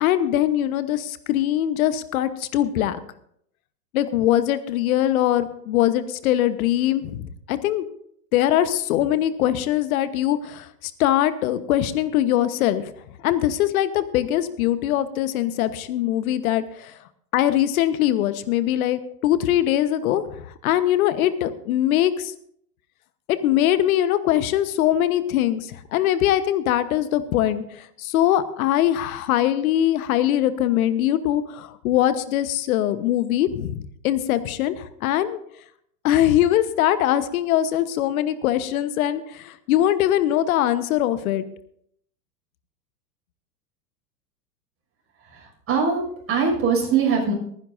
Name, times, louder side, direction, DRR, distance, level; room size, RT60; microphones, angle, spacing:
voice 1, 0.0-3.0 3.9-7.8 8.3-12.8 13.2-16.9 17.3-22.3 23.3-35.4 36.0-41.4, left 12 dB, 60° left, 13 dB, 1.2 m, -22 dB
voice 2, 45.2-46.0 46.3-47.3, right 5 dB, 25° right, 0 dB, 6.0 m, -22 dB
23.0 x 10.0 x 2.6 m, 0.68 s
hypercardioid pair, 110°, 49 cm